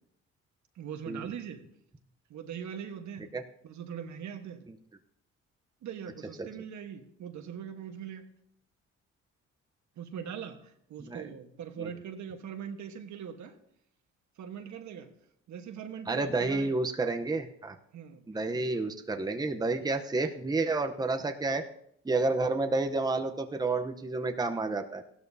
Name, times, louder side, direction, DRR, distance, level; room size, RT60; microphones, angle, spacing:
voice 1, 0.7-1.6 2.3-3.3 3.6-4.7 5.8-8.3 10.0-13.6 14.4-15.1 15.5-16.7 17.9-18.3 18.5-18.7, right 8 dB, 70° right, 6 dB, 1.3 m, -41 dB
voice 2, 16.1-17.8 18.3-21.6 22.0-25.0, right 3 dB, 15° right, 6 dB, 0.8 m, -30 dB
15.5 x 12.5 x 2.7 m, 0.73 s
cardioid pair, 90°, 30 cm